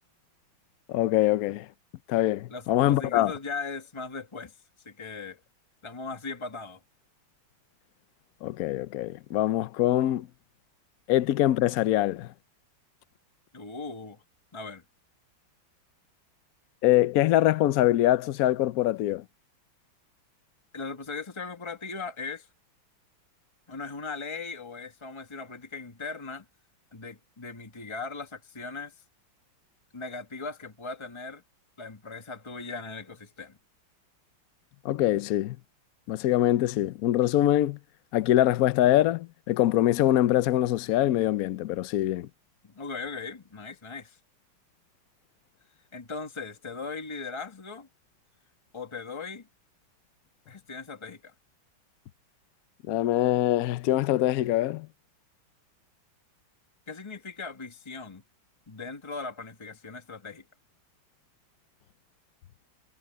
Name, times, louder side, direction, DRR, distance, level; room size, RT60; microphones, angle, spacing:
voice 1, 0.9-1.7 2.1-3.3 8.4-10.3 11.1-12.3 16.8-19.2 34.8-35.6 36.1-37.8 38.1-42.3 52.9-54.9, left 14 dB, 75° left, 0.8 m, -24 dB
voice 2, 2.5-4.5 4.8-5.4 5.8-6.8 13.5-14.2 14.5-14.8 20.7-22.5 23.7-26.4 26.9-28.9 29.9-31.4 31.8-33.6 42.6-44.2 45.9-47.9 48.7-49.5 50.5-51.3 56.9-58.2 58.7-60.4, left 4 dB, 15° left, 1.6 m, -38 dB
omnidirectional pair, 2.3 m